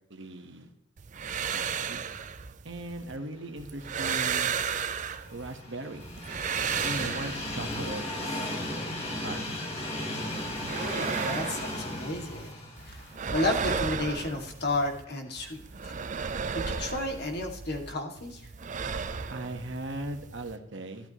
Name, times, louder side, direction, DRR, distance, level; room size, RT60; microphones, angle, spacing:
voice 1, 0.1-0.7 1.5-2.0 2.6-4.5 5.3-6.1 6.8-8.0 9.2-9.4 19.3-21.1, right 1 dB, 65° right, 6 dB, 1.3 m, -38 dB
sound 1, 1.0-3.2 3.6-5.6 6.0-7.9 10.3-12.5 12.8-15.0 15.4-17.9 18.2-20.6, right 6 dB, 40° right, 0.5 m, -34 dB
Train, 4.4-14.5 14.9-15.0 16.1-16.2, left 1 dB, 30° left, 2.6 m, -36 dB
voice 2, 10.7-12.5 12.8-15.9 16.5-18.5, left 2 dB, 55° left, 2 dB, 2.3 m, -32 dB
13.0 x 12.5 x 3.1 m, 0.73 s
head